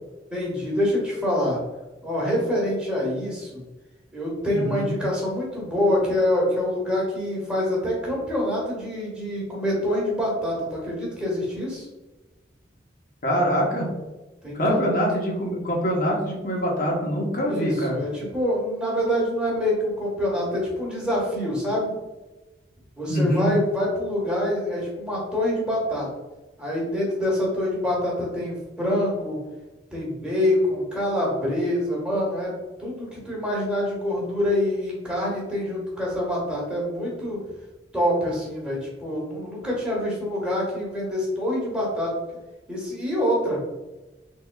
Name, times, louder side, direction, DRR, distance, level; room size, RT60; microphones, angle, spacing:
voice 1, 0.3-1.6 2.0-3.6 4.1-11.9 14.4-14.8 17.4-21.9 23.0-26.1 26.6-29.4 29.9-32.5 32.8-37.4 37.9-42.1 42.7-43.6, left 1 dB, 5° right, -5 dB, 1.2 m, -26 dB
voice 2, 4.5-4.9 13.2-13.9 14.5-18.0 23.1-23.5, equal, 45° left, -1 dB, 0.9 m, -24 dB
3.7 x 3.6 x 2.2 m, 1.1 s
head